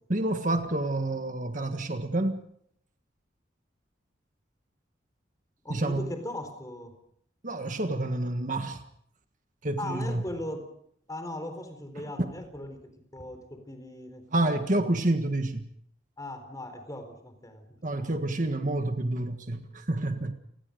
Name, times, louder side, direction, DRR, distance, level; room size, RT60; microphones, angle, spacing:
voice 1, 0.1-2.4 5.7-6.1 7.4-8.8 9.6-10.2 12.0-12.1 14.3-15.7 17.8-20.3, right 1 dB, 45° right, 1.6 m, -28 dB
voice 2, 5.6-6.9 9.8-10.7 11.1-14.8 16.2-17.7 17.9-18.1, left 1 dB, 20° left, 4.2 m, -39 dB
29.5 x 19.5 x 5.2 m
head